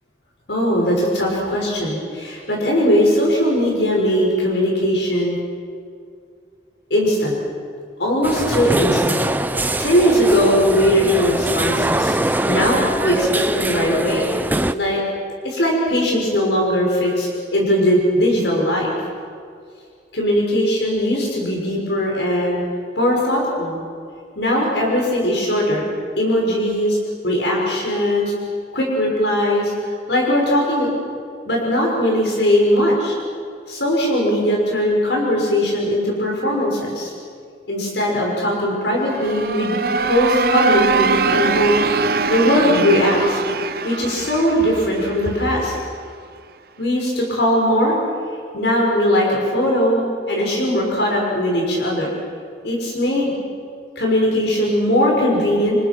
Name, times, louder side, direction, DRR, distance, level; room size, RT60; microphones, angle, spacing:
voice 1, 0.5-5.4 6.9-7.4 8.0-9.2 9.8-12.2 12.5-14.2 14.7-15.0 15.4-18.9 20.1-22.6 23.0-23.8 24.4-25.9 26.2-27.0 27.2-28.3 28.7-29.7 30.1-30.9 31.5-33.1 33.7-37.1 37.7-39.8 40.0-41.7 42.3-43.4 43.8-45.8 46.8-47.9 48.5-52.1 52.6-53.3 54.0-55.8, equal, 80° left, -2 dB, 6.2 m, -19 dB
sound 1, 8.2-14.7, right 1 dB, 10° right, 0.6 m, -22 dB
sound 2, 39.0-45.8, right 4 dB, 55° right, 0.8 m, -22 dB
29.5 x 26.5 x 6.2 m, 2.2 s
head